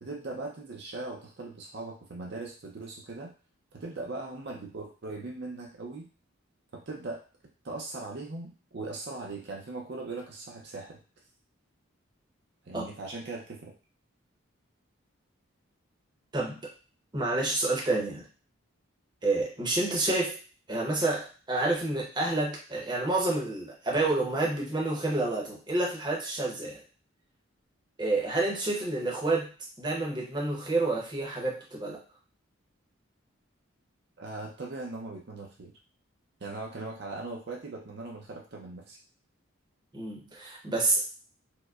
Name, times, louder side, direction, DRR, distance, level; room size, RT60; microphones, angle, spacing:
voice 1, 0.0-3.3 3.7-6.1 6.7-7.2 7.6-11.0 12.7-13.7 34.2-35.7 36.4-39.0, right 3 dB, 55° right, -1 dB, 0.5 m, -39 dB
voice 2, 17.1-18.2 19.2-20.4 20.7-26.8 28.0-29.5 29.8-32.0 39.9-41.0, right 2 dB, 20° right, -2 dB, 0.7 m, -29 dB
4.5 x 2.1 x 2.3 m, 0.36 s
head